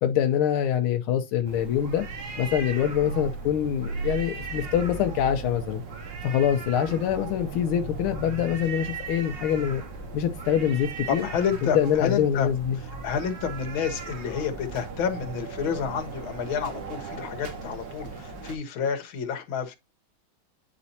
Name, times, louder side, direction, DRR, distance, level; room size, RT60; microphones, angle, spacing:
voice 1, 0.0-2.0 2.4-5.8 6.2-9.8 10.1-11.3 11.6-12.8, left 9 dB, 85° left, 1.5 m, -25 dB
sound 1, 1.5-18.6, right 4 dB, 60° right, 2.0 m, -37 dB
voice 2, 11.1-12.5 13.0-19.7, left 7 dB, 70° left, 1.8 m, -29 dB
9.6 x 4.1 x 2.7 m
omnidirectional pair, 2.3 m